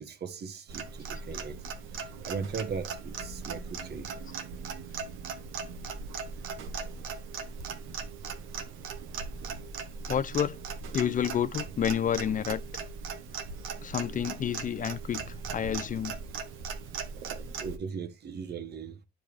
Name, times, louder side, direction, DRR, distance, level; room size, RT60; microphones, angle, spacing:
voice 1, 0.0-1.6 1.9-4.1 17.6-19.0, right 6 dB, 55° right, 1.1 m, -38 dB
Clock, 0.7-17.8, right 5 dB, 90° right, 1.1 m, -39 dB
voice 2, 10.1-10.6 10.9-12.6 13.8-16.2, left 9 dB, 40° left, 0.5 m, -29 dB
10.5 x 5.2 x 3.2 m
cardioid pair, 90°, 20 cm